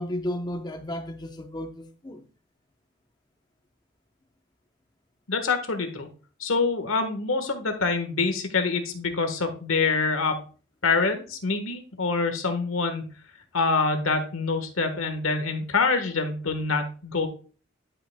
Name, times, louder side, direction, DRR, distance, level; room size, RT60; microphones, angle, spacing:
voice 1, 0.0-2.3, left 1 dB, 20° left, 0.8 m, -33 dB
voice 2, 5.3-6.1 6.4-10.4 10.8-13.0 13.5-17.3, left 4 dB, 90° left, 1.3 m, -25 dB
11.5 x 5.5 x 2.2 m
head